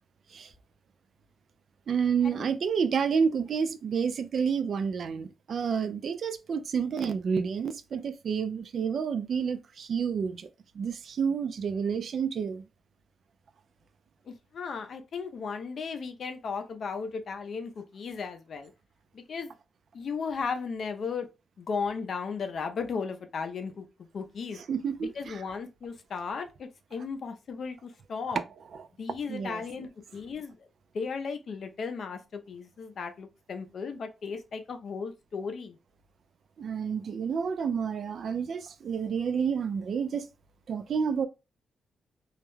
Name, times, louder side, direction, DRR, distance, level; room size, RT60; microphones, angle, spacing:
voice 1, 1.9-10.5 10.7-12.7 24.6-25.4 28.4-28.5 28.8-28.9 29.3-29.6 36.6-40.3 40.7-41.3, right 6 dB, 60° right, 0.3 m, -29 dB
voice 2, 14.3-18.7 19.1-19.5 19.9-21.3 21.6-24.6 25.0-28.4 29.0-30.7 30.9-35.8, left 5 dB, 60° left, 0.4 m, -36 dB
2.3 x 2.1 x 3.0 m
wide cardioid pair, 140°, 0 cm